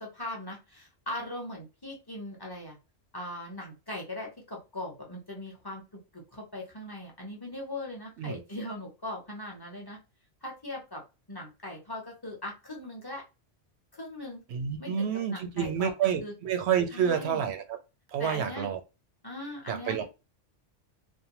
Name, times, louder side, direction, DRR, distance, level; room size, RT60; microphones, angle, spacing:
voice 1, 0.0-2.8 3.1-10.0 10.4-11.0 11.3-13.2 13.9-14.4 14.8-15.9 16.2-16.3 16.9-17.4 18.2-18.7 19.2-20.0, left 1 dB, 25° left, 0.6 m, -40 dB
voice 2, 14.5-17.8 18.1-18.8 19.7-20.0, right 8 dB, 70° right, 0.8 m, -29 dB
2.6 x 2.1 x 2.9 m
omnidirectional pair, 1.2 m